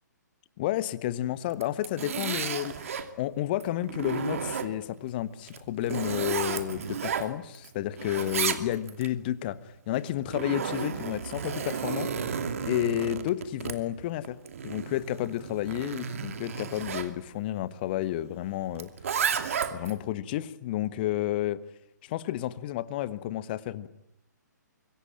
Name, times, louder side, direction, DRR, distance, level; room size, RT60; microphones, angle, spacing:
voice 1, 0.6-12.1 12.7-14.4 14.6-18.9 19.7-21.6 22.0-23.9, left 13 dB, 30° left, 16 dB, 1.3 m, -31 dB
Zipper (clothing), 1.5-3.1 3.6-5.0 5.5-7.7 8.0-9.1 10.0-17.1 18.8-20.0, right 7 dB, 50° right, 2.5 m, -33 dB
26.5 x 23.0 x 9.1 m, 0.81 s
figure-of-eight pair, 130°, 10 cm